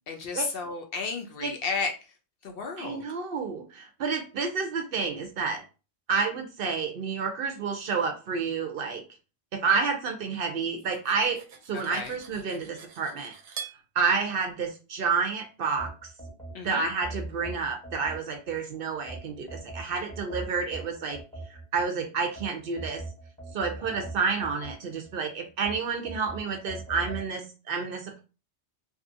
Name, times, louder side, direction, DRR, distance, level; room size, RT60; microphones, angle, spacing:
voice 1, 0.1-1.9 2.4-3.0 11.9-12.1 16.5-16.9, left 4 dB, 65° left, 4 dB, 0.7 m, -32 dB
voice 2, 2.8-5.6 6.1-9.0 9.5-11.4 11.7-13.3 13.9-15.9 16.6-21.2 21.5-23.0 23.5-28.2, right 5 dB, 60° right, 4 dB, 0.7 m, -29 dB
Cutlery silverware, 10.6-13.8, right 7 dB, 90° right, 0.9 m, -44 dB
sound 1, 15.8-18.6 19.1-21.8 22.4-25.1 25.6-27.3, right 2 dB, 5° left, 0.8 m, -41 dB
2.6 x 2.4 x 2.5 m, 0.32 s
omnidirectional pair, 1.2 m